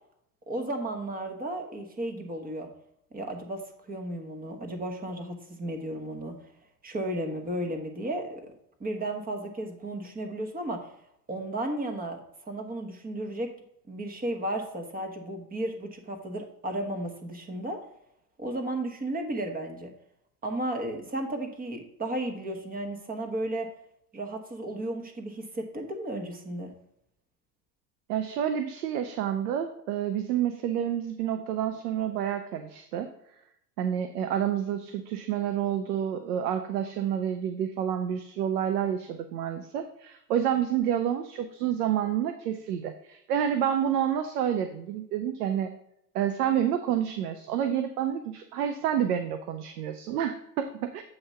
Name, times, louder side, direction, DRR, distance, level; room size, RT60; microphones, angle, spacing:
voice 1, 0.5-2.7 3.1-6.4 6.8-8.4 8.8-10.9 11.3-13.5 13.9-17.8 18.4-19.9 20.4-23.7 24.1-26.7, right 1 dB, 20° right, 4 dB, 1.2 m, -34 dB
voice 2, 28.1-33.1 33.8-45.7 46.1-51.0, right 9 dB, 85° right, 8 dB, 0.7 m, -29 dB
7.8 x 2.9 x 5.6 m, 0.75 s
supercardioid pair, 105°, 46 cm